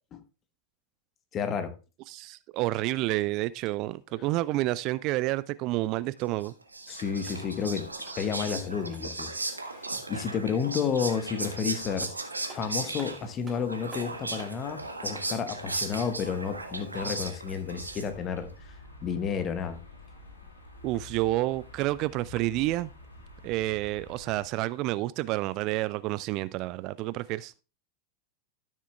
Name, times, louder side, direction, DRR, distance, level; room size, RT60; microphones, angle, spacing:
voice 1, 1.3-1.7 6.9-7.9 8.2-9.3 10.1-12.1 12.5-18.5 19.0-19.8, left 7 dB, 30° left, 1.2 m, -31 dB
voice 2, 2.1-6.5 20.8-22.9 23.4-27.5, right 17 dB, 40° right, 0.3 m, -29 dB
sound 1, 2.7-4.0 7.0-9.3 11.5-11.6 12.0-14.6, right 3 dB, 15° right, 3.0 m, -53 dB
Whispering, 6.4-18.4, right 2 dB, 80° right, 1.2 m, -36 dB
sound 2, 15.8-24.4, left 2 dB, 75° left, 2.1 m, -50 dB
13.0 x 7.3 x 2.3 m
figure-of-eight pair, 90°, 0 cm